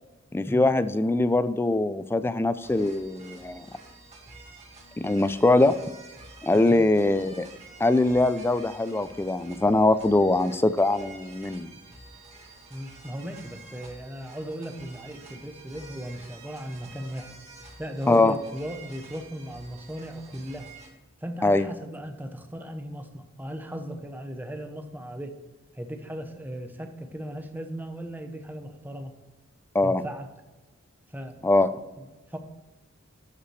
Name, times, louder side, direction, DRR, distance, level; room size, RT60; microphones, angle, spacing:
voice 1, 0.3-3.7 5.0-5.7 6.4-7.5 7.8-11.7 18.1-18.3 21.4-21.7 29.7-30.0 31.4-31.7, left 2 dB, 10° left, 13 dB, 0.3 m, -22 dB
sound 1, 2.6-20.9, right 3 dB, 35° right, 1.9 m, -49 dB
voice 2, 6.5-6.9 12.7-17.4 17.8-20.7 21.2-25.4 25.7-29.2 29.8-30.3 31.1-31.4 32.0-32.4, equal, 10° right, 6 dB, 0.8 m, -37 dB
12.0 x 5.6 x 3.2 m, 1.1 s
head